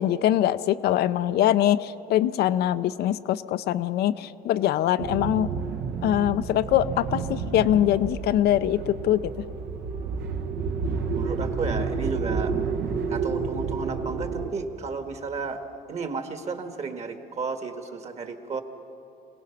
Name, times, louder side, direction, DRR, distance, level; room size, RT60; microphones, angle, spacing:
voice 1, 0.0-5.5 6.0-9.3, left 12 dB, 70° left, 12 dB, 0.6 m, -23 dB
sound 1, 5.0-14.5, right 5 dB, 75° right, 1.3 m, -30 dB
voice 2, 11.1-12.6 13.1-18.6, right 5 dB, 40° right, 6 dB, 1.7 m, -33 dB
26.0 x 17.5 x 5.9 m, 2.8 s
cardioid pair, 110°, 17 cm